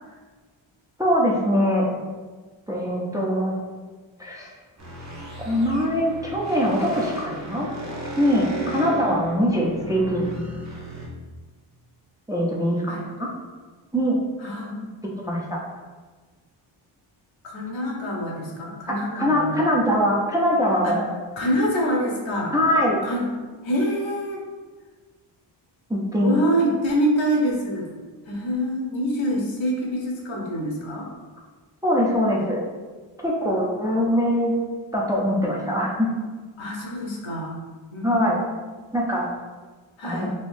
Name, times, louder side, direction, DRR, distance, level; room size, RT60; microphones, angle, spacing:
voice 1, 1.0-1.9 2.7-3.6 4.2-4.5 5.4-7.7 8.2-10.2 12.3-13.3 13.9-14.2 15.2-15.6 18.9-21.0 22.5-23.0 25.9-26.4 31.8-32.6 33.2-34.5 34.9-36.1 38.0-38.4 38.9-39.3 40.0-40.3, equal, 10° right, -3 dB, 0.4 m, -22 dB
sound 1, 4.8-11.1, right 1 dB, 35° right, 0.7 m, -35 dB
voice 2, 14.4-14.8 17.4-19.6 20.8-21.0 21.4-22.5 23.0-23.3 23.6-24.4 26.2-27.9 28.2-31.1 32.4-32.5 33.4-33.8 36.6-37.6 37.9-38.6 39.0-39.2 40.0-40.3, equal, 70° left, -1 dB, 0.9 m, -26 dB
3.5 x 2.8 x 2.6 m, 1.4 s
wide cardioid pair, 95°, 48 cm